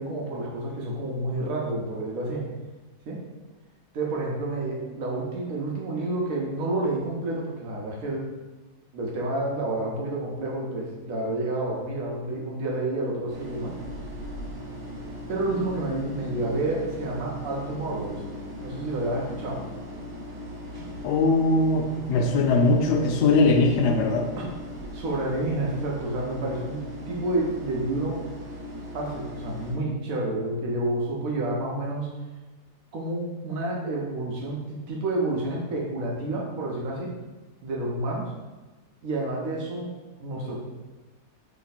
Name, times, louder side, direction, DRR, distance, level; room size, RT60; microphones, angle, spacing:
voice 1, 0.0-2.4 3.1-3.2 3.9-8.3 8.9-13.8 15.3-18.2 18.6-19.6 24.4-24.5 24.9-26.8 27.1-28.2 28.9-32.1 32.9-37.1 37.6-38.3 39.0-39.9 40.2-40.6, right 2 dB, 65° right, -2 dB, 1.1 m, -29 dB
sound 1, 13.3-29.7, left 1 dB, 80° right, 1.5 m, -38 dB
voice 2, 21.0-21.8 22.1-24.3, left 3 dB, 80° left, 3 dB, 1.1 m, -20 dB
3.3 x 3.0 x 4.1 m, 1.2 s
omnidirectional pair, 1.7 m